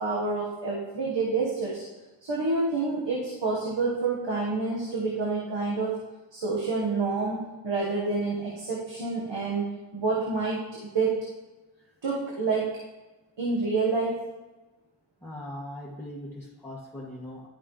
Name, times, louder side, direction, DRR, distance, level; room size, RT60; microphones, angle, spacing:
voice 1, 0.0-1.8 2.2-5.9 6.3-9.6 9.9-11.2 12.0-12.7 13.4-14.2, right 3 dB, 85° right, -5 dB, 1.5 m, -28 dB
voice 2, 15.2-17.5, left 1 dB, 5° left, -9 dB, 2.2 m, -40 dB
11.5 x 5.6 x 3.2 m, 1.1 s
cardioid pair, 45°, 43 cm